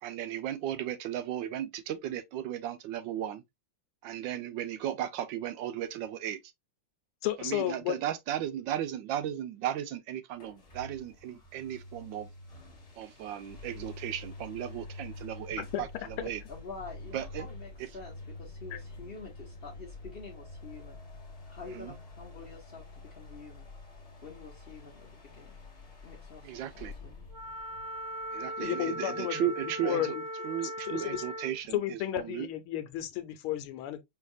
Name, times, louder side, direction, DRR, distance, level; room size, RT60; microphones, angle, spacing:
voice 1, 0.0-3.4 4.0-6.4 7.4-12.3 12.9-16.4 17.1-17.5 17.8-17.9 21.7-21.9 26.4-26.9 28.3-30.2 30.4-32.5, right 11 dB, 75° right, 1.2 m, -35 dB
voice 2, 7.2-8.0 15.7-15.8 18.7-18.8 28.6-29.5 29.8-30.2 30.9-31.2 31.7-34.0, left 13 dB, 85° left, 1.6 m, -32 dB
sound 1, 10.3-28.8, left 2 dB, 35° left, 1.2 m, -47 dB
voice 3, 16.5-21.0 21.5-23.7 24.2-25.6 26.0-27.1, left 4 dB, 50° left, 0.7 m, -47 dB
Wind instrument woodwind instrument, 27.3-31.6, right 1 dB, 20° right, 0.5 m, -38 dB
5.5 x 3.3 x 2.4 m
omnidirectional pair, 2.3 m